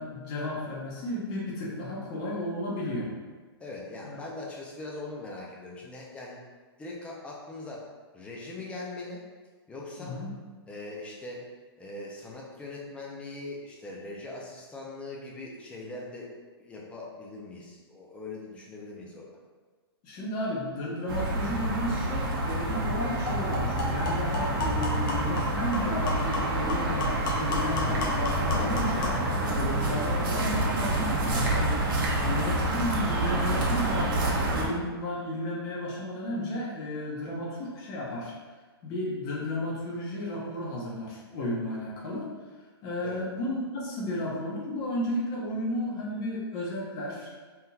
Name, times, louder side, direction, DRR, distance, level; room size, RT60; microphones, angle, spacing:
voice 1, 0.0-3.1 4.0-4.2 10.0-10.3 20.0-32.0 32.2-38.3 38.8-42.3 42.8-47.3, left 1 dB, 30° left, -4 dB, 0.8 m, -33 dB
voice 2, 3.6-6.4 6.8-7.9 8.1-9.2 9.7-10.2 10.7-11.5 11.8-16.3 16.6-19.4 32.1-32.3 43.0-43.2, left 2 dB, 10° left, -3 dB, 0.4 m, -41 dB
sound 1, 21.1-34.7, right 2 dB, 50° right, 0.8 m, -28 dB
sound 2, 22.3-22.4 22.7-22.9 23.3-29.3, left 2 dB, 55° left, 1.0 m, -33 dB
3.5 x 2.9 x 2.3 m, 1.4 s
hypercardioid pair, 145°, 14 cm